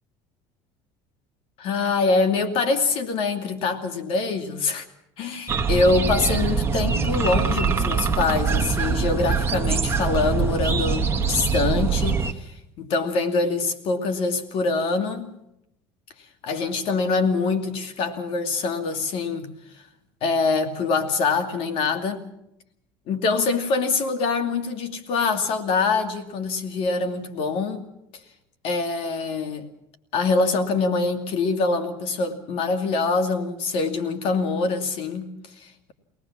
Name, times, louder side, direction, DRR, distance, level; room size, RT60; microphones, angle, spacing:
voice 1, 1.6-4.9 5.2-12.5 12.8-15.3 16.4-19.5 20.2-22.2 23.1-27.9 28.6-29.7 30.1-35.9, left 4 dB, 60° left, 2.4 m, -24 dB
sound 1, 5.5-12.3, right 5 dB, 25° right, 1.5 m, -23 dB
23.5 x 18.5 x 7.3 m
supercardioid pair, 100°, 11 cm